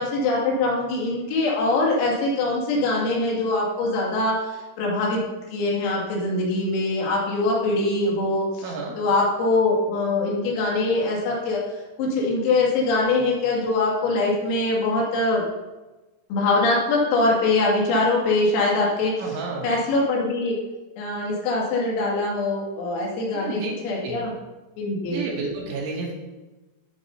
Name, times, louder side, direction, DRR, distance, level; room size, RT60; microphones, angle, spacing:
voice 1, 0.0-5.2 5.5-11.6 12.0-15.4 16.3-19.4 19.6-20.6 21.0-24.3 24.8-25.2, left 2 dB, 85° left, -3 dB, 5.0 m, -23 dB
voice 2, 8.6-8.9 19.2-19.7 23.3-23.7 24.0-24.2 25.1-26.1, right 4 dB, 70° right, -3 dB, 4.5 m, -30 dB
15.5 x 8.9 x 2.7 m, 1.1 s
omnidirectional pair, 5.9 m